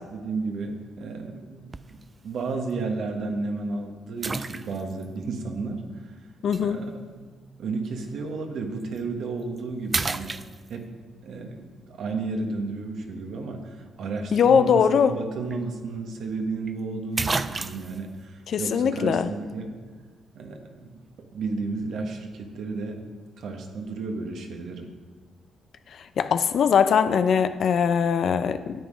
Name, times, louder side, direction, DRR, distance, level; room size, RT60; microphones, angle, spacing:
voice 1, 0.1-6.1 6.6-7.3 7.6-10.4 10.7-10.9 11.2-19.7 20.3-20.9 21.2-23.0 23.4-24.9, right 3 dB, 70° right, 3 dB, 1.3 m, -33 dB
sound 1, 1.7-2.0 2.7-2.8 4.2-5.1 6.5-6.6 8.8-9.0 9.4-9.6 9.9-11.0 15.1-15.2 15.5-15.6 16.7-16.8 17.2-18.0, right 3 dB, 25° right, 0.4 m, -30 dB
voice 2, 6.4-6.8 14.3-15.2 18.5-19.3 26.2-28.7, left 7 dB, 60° left, 10 dB, 0.5 m, -21 dB
9.4 x 8.1 x 4.9 m, 1.4 s
cardioid pair, 90°, 0 cm